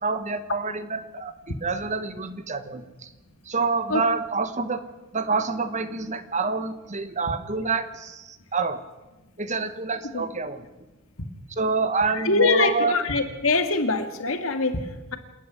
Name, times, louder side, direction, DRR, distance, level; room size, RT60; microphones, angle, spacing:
voice 1, 0.0-1.3 1.6-3.1 3.5-4.8 5.1-8.8 9.4-10.6 11.6-12.9, right 4 dB, 35° right, 11 dB, 1.2 m, -27 dB
voice 2, 12.1-15.2, left 3 dB, 70° left, 7 dB, 2.1 m, -23 dB
27.5 x 10.0 x 9.6 m, 1.1 s
head